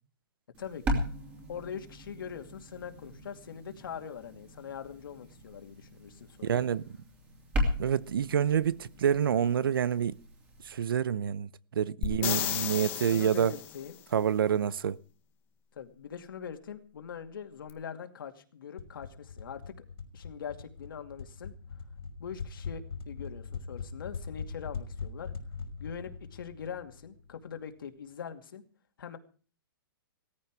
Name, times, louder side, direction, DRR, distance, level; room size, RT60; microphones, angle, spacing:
sound 1, 0.5-10.8, equal, 10° right, 2.7 m, -38 dB
voice 1, 1.5-6.6 12.0-13.9 15.7-19.7 20.1-21.5 22.2-25.3 25.8-28.6 29.0-29.2, left 7 dB, 65° left, 2.4 m, -42 dB
voice 2, 6.4-6.8 7.8-10.2 10.6-13.5 14.1-15.0, right 8 dB, 70° right, 0.8 m, -27 dB
sound 2, 12.0-13.9 17.7-17.8, left 14 dB, 15° left, 0.9 m, -33 dB
sound 3, 18.8-27.4, left 5 dB, 85° left, 4.6 m, -42 dB
17.5 x 14.0 x 4.7 m
hypercardioid pair, 180°, 12 cm